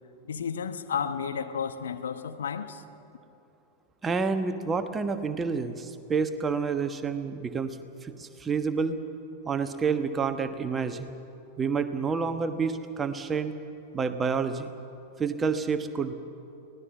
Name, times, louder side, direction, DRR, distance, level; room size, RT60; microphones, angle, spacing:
voice 1, 0.2-2.8, left 7 dB, 65° left, 9 dB, 1.0 m, -32 dB
voice 2, 4.0-9.0 9.4-11.1 11.6-13.5 13.9-14.7 15.2-16.1, right 5 dB, 20° right, 9 dB, 1.3 m, -29 dB
24.0 x 17.5 x 7.2 m, 2.7 s
figure-of-eight pair, 90°, 0 cm